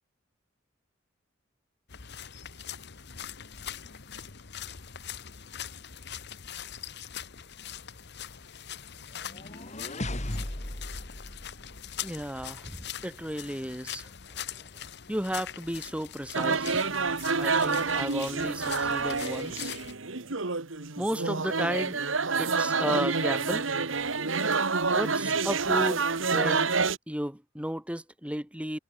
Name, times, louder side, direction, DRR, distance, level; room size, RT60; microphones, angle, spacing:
sound 1, 1.9-19.9, left 9 dB, 60° left, 1.4 m, -42 dB
sound 2, 9.1-12.3, left 1 dB, 35° left, 2.9 m, -37 dB
voice 1, 12.0-14.1 15.1-16.8 17.4-19.7 21.0-22.0 22.4-23.7 24.9-26.1 26.3-26.7 27.1-28.8, equal, 5° right, 2.0 m, -33 dB
sound 3, 16.3-27.0, right 4 dB, 70° right, 1.8 m, -28 dB
head